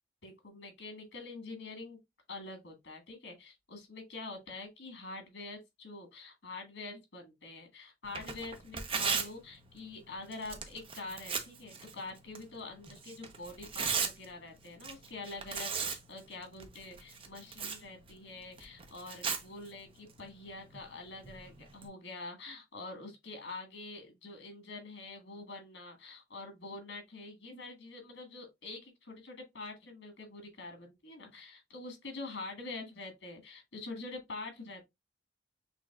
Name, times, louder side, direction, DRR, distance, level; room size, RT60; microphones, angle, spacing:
voice 1, 0.2-2.0 2.3-34.8, left 3 dB, 85° left, 1.6 m, -45 dB
Tearing, 8.0-21.9, right 6 dB, 30° right, 0.6 m, -40 dB
6.0 x 2.9 x 2.4 m
head